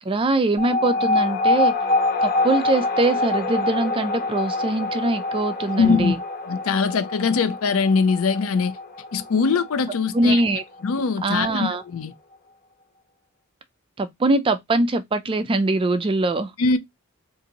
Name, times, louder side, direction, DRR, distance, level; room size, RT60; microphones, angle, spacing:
voice 1, 0.0-1.7 2.2-6.2 10.1-10.6 11.2-11.8 14.0-16.5, right 2 dB, 25° right, 0.3 m, -22 dB
sound 1, 0.6-11.5, left 2 dB, 40° left, 0.8 m, -25 dB
voice 2, 5.8-6.1 6.4-8.8 9.1-10.4 10.8-12.1 16.6-16.8, left 5 dB, 65° left, 0.5 m, -22 dB
3.9 x 2.5 x 2.8 m
head